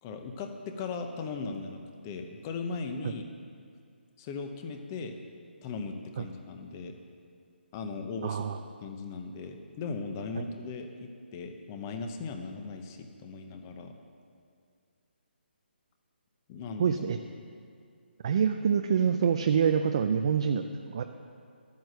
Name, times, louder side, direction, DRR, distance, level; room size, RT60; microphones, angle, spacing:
voice 1, 0.0-3.2 4.2-5.2 5.6-7.0 7.7-8.4 8.8-13.9 16.5-17.0 17.4-17.5, left 4 dB, 15° left, 6 dB, 0.7 m, -38 dB
voice 2, 8.2-8.6 16.8-17.2 18.2-21.0, right 7 dB, 30° right, 6 dB, 0.4 m, -26 dB
12.5 x 9.2 x 6.6 m, 2.3 s
hypercardioid pair, 170°, 6 cm